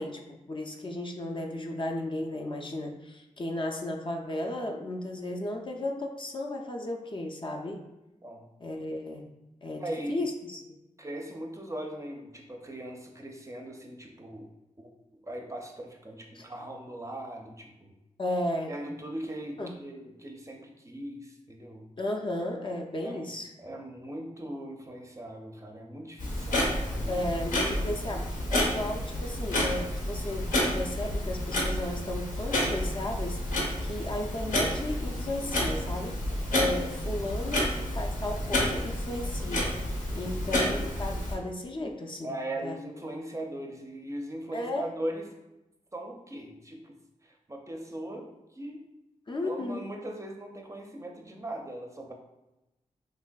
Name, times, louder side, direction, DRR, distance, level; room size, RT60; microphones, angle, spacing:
voice 1, 0.0-7.9 8.6-9.3 9.6-9.8 10.1-10.6 16.3-16.4 18.2-18.7 19.6-19.7 22.0-23.5 27.1-36.2 36.5-39.7 40.1-42.4 42.6-42.8 44.5-44.8 49.3-49.8, left 1 dB, 40° left, 2 dB, 0.4 m, -34 dB
voice 2, 9.8-10.2 11.0-14.5 14.8-14.9 15.2-17.9 18.7-21.9 23.0-23.3 23.6-27.1 37.5-37.7 40.3-40.6 42.2-45.3 45.9-46.9 47.2-48.8 49.4-52.1, right 1 dB, 25° right, 1 dB, 0.5 m, -39 dB
Clock, 26.2-41.3, left 1 dB, 85° left, 0.7 m, -30 dB
3.2 x 2.5 x 2.2 m, 0.97 s
cardioid pair, 45°, 13 cm